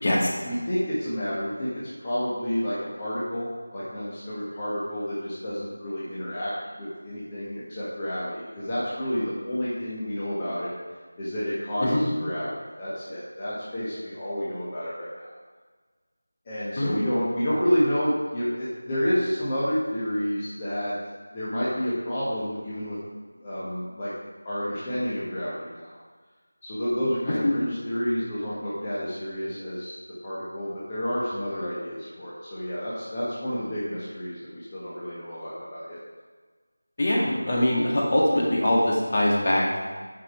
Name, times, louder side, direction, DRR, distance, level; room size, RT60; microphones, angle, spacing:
voice 1, 0.4-6.5 6.8-10.7 11.2-15.3 16.4-20.9 21.3-23.0 23.4-24.1 24.4-25.9 26.6-29.9 30.2-36.0, equal, 20° left, -10 dB, 1.6 m, -29 dB
voice 2, 37.0-39.8, left 1 dB, 40° left, -3 dB, 2.0 m, -22 dB
9.4 x 6.0 x 4.5 m, 1.5 s
figure-of-eight pair, 170°, 0 cm